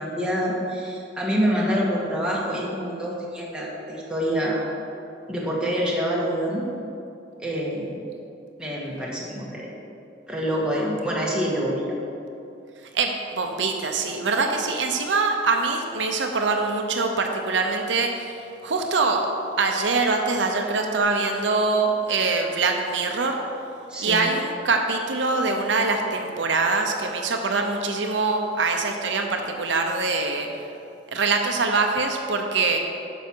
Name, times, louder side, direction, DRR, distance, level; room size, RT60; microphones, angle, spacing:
voice 1, 0.0-4.6 5.3-6.7 7.4-8.0 8.6-9.7 10.3-11.8 23.9-24.2, equal, 5° right, -5 dB, 1.6 m, -26 dB
voice 2, 12.9-19.3 19.6-23.4 24.0-30.5 31.1-32.8, right 3 dB, 75° right, 3 dB, 0.7 m, -24 dB
9.3 x 6.3 x 4.6 m, 2.6 s
head